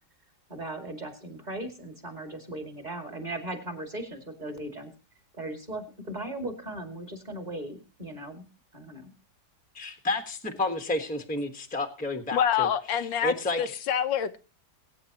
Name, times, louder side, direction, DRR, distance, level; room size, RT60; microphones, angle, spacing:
voice 1, 0.5-4.9 5.3-8.4 8.7-9.1, right 1 dB, 25° right, 6 dB, 2.4 m, -38 dB
voice 2, 9.7-12.7 13.2-13.7, left 2 dB, 5° left, 6 dB, 1.2 m, -30 dB
voice 3, 12.3-14.4, left 9 dB, 85° left, 9 dB, 1.6 m, -27 dB
22.0 x 9.4 x 2.9 m, 0.33 s
omnidirectional pair, 2.0 m